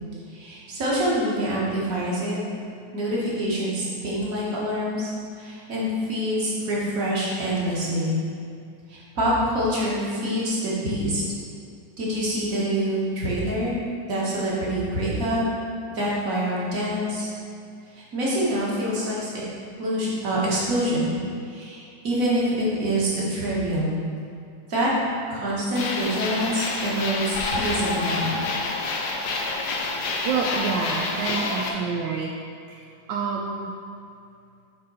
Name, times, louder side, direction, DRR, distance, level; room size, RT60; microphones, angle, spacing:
voice 1, 0.3-2.4 2.9-5.1 5.4-8.2 8.9-11.2 12.0-13.8 14.0-15.4 15.9-17.3 17.9-19.4 19.8-21.1 21.5-24.0 24.7-24.9 25.3-28.5, equal, 50° right, -6 dB, 1.8 m, -26 dB
sound 1, 25.7-31.7, left 3 dB, 85° left, 1.5 m, -28 dB
voice 2, 29.8-32.3 32.7-33.7, right 5 dB, 85° right, -1 dB, 1.3 m, -28 dB
6.7 x 3.8 x 5.4 m, 2.4 s
omnidirectional pair, 1.9 m